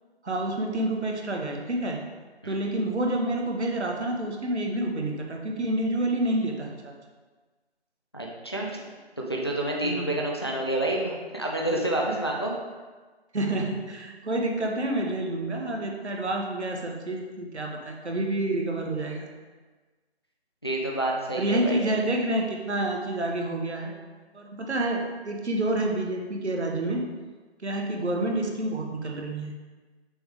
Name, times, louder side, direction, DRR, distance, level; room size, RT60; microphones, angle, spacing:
voice 1, 0.2-2.0 2.5-6.9 9.8-10.1 12.4-12.5 13.3-19.3 21.4-24.0 24.3-27.1 27.6-29.5, right 1 dB, 85° right, 1 dB, 1.2 m, -28 dB
voice 2, 8.1-8.8 9.2-12.5 20.6-21.8, right 1 dB, 25° left, -1 dB, 0.4 m, -28 dB
6.1 x 3.5 x 4.7 m, 1.3 s
figure-of-eight pair, 160°, 33 cm